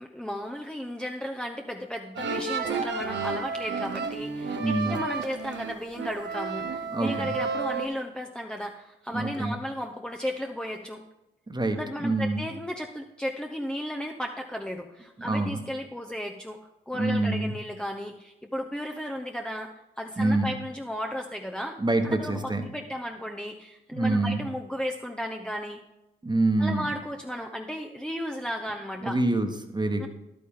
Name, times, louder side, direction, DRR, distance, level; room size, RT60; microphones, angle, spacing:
voice 1, 0.0-11.0 11.7-16.6 16.9-19.7 20.0-21.8 22.0-25.8 26.6-29.2 30.0-30.1, equal, 5° left, 2 dB, 0.8 m, -34 dB
sound 1, 2.2-7.9, right 5 dB, 60° right, 1.0 m, -31 dB
voice 2, 4.6-5.0 6.9-7.4 9.1-9.6 11.5-12.5 15.2-15.7 16.9-17.6 20.2-20.5 21.8-22.7 23.9-24.4 26.2-26.9 29.0-30.1, right 2 dB, 20° right, 6 dB, 1.4 m, -26 dB
10.5 x 8.8 x 3.7 m, 0.96 s
hypercardioid pair, 45°, 21 cm